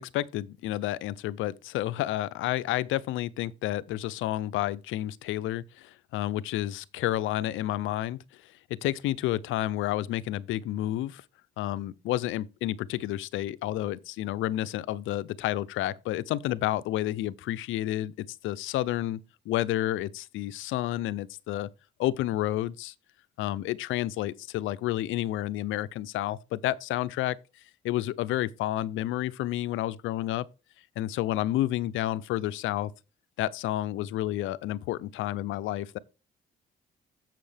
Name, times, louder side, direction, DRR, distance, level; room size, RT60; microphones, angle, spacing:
voice 1, 0.0-8.2 8.8-11.2 11.6-19.2 19.5-21.7 22.0-22.9 23.4-27.4 27.8-30.5 31.0-32.9 33.4-36.0, left 14 dB, 85° left, 0.5 m, -30 dB
7.5 x 7.2 x 3.4 m
cardioid pair, 90°, 20 cm